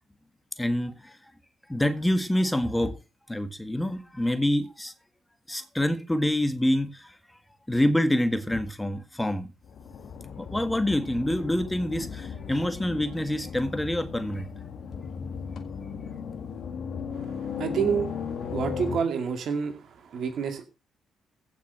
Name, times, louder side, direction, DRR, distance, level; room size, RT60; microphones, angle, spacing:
voice 1, 0.6-1.2 1.7-2.9 3.3-4.9 5.5-7.1 7.7-9.5 10.4-14.5, left 1 dB, 10° left, 1.8 m, -26 dB
sound 1, 9.6-19.0, left 6 dB, 60° left, 1.7 m, -36 dB
voice 2, 17.6-18.2 18.5-19.8 20.1-20.6, right 6 dB, 60° right, 2.2 m, -28 dB
16.0 x 6.0 x 6.2 m
hypercardioid pair, 45°, 0 cm